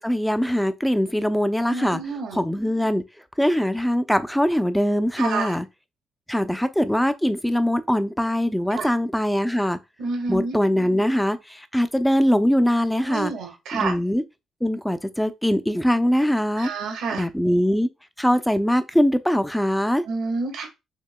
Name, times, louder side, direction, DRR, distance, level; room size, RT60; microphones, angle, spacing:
voice 1, 0.0-2.0 2.3-3.0 3.4-5.7 6.3-9.8 10.3-13.3 13.7-14.2 14.6-16.7 17.1-17.9 18.2-20.0, equal, 5° left, 0.5 m, -22 dB
voice 2, 1.7-2.4 5.2-5.5 8.7-8.9 10.0-10.6 13.0-13.9 16.6-17.2 20.0-20.7, right 4 dB, 85° right, 1.6 m, -28 dB
6.6 x 2.7 x 2.2 m
cardioid pair, 90°, 0 cm